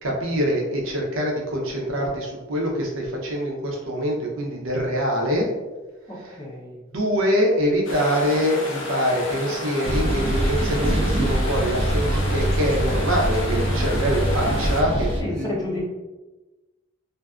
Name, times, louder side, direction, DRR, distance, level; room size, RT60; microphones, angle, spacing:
voice 1, 0.0-5.5 6.2-6.3 6.9-15.5, equal, 90° right, -1 dB, 0.6 m, -24 dB
voice 2, 6.1-6.8 15.2-15.8, left 1 dB, 20° left, -4 dB, 0.5 m, -30 dB
sound 1, 7.8-14.8, left 1 dB, 65° left, 0.5 m, -32 dB
sound 2, 9.8-15.2, right 1 dB, 30° right, 0.3 m, -23 dB
2.6 x 2.3 x 2.3 m, 1.1 s
head